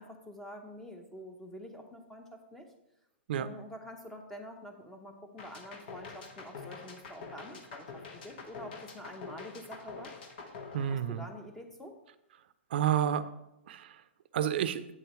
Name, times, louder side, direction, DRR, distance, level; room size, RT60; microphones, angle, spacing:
voice 1, 0.0-2.7 3.4-10.1 10.9-12.0, equal, 5° left, 4 dB, 0.8 m, -47 dB
sound 1, 5.4-11.6, left 4 dB, 50° left, 1.2 m, -46 dB
voice 2, 10.7-11.2 12.7-13.2 13.7-14.0 14.3-14.8, right 10 dB, 55° right, 13 dB, 0.5 m, -29 dB
8.4 x 6.9 x 3.1 m, 0.87 s
hypercardioid pair, 155°, 7 cm